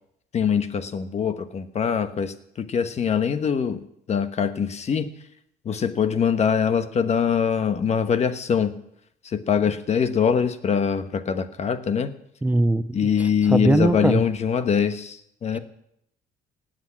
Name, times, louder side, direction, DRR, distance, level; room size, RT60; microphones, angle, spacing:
voice 1, 0.3-3.8 4.1-5.1 5.6-8.7 9.2-12.1 12.9-15.6, left 7 dB, 40° left, 11 dB, 1.2 m, -23 dB
voice 2, 12.4-14.2 15.5-15.6, right 2 dB, 10° right, 12 dB, 0.5 m, -21 dB
18.0 x 7.9 x 7.4 m, 0.75 s
cardioid pair, 110°, 17 cm